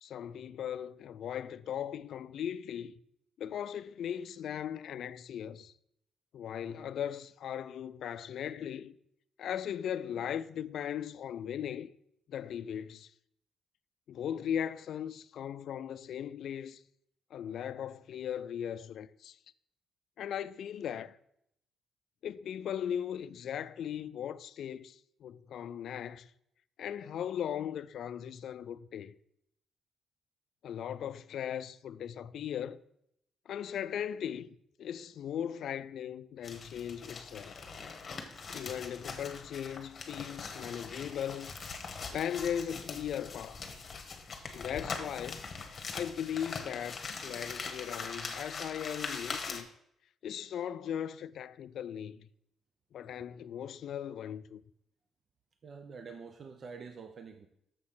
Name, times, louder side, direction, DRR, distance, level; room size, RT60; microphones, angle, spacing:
voice 1, 0.0-2.9 3.4-5.7 6.3-9.0 9.4-11.9 12.3-13.1 14.1-16.8 17.3-19.4 20.2-21.2 22.2-26.3 26.8-29.1 30.6-32.8 33.5-37.6 38.5-41.5 42.0-43.6 44.5-45.4 45.9-49.7 50.2-52.3 52.9-54.6, left 9 dB, 70° left, 0.4 m, -38 dB
sound 1, 36.4-49.6, left 4 dB, 40° left, 1.3 m, -42 dB
voice 2, 55.6-57.5, right 5 dB, 45° right, 0.7 m, -47 dB
6.7 x 6.4 x 5.6 m
cardioid pair, 90°, 0 cm